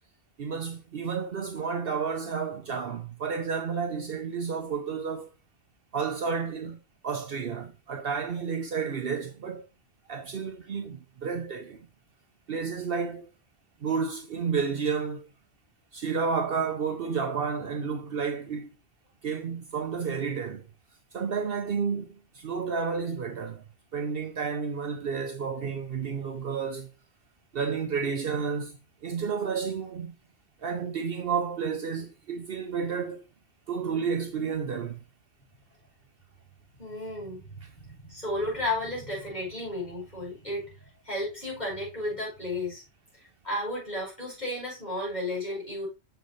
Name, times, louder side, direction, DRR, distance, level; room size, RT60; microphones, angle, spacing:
voice 1, 0.4-5.3 5.9-6.8 7.0-9.7 10.1-11.8 12.5-13.2 13.8-15.3 15.9-18.7 19.2-20.7 21.1-23.6 23.9-26.9 27.5-28.8 29.0-30.1 30.6-33.2 33.7-35.0, right 6 dB, 60° right, 0.9 m, -31 dB
voice 2, 36.8-42.8 43.4-45.9, left 1 dB, 35° left, 5.3 m, -33 dB
6.5 x 6.2 x 3.1 m
omnidirectional pair, 1.2 m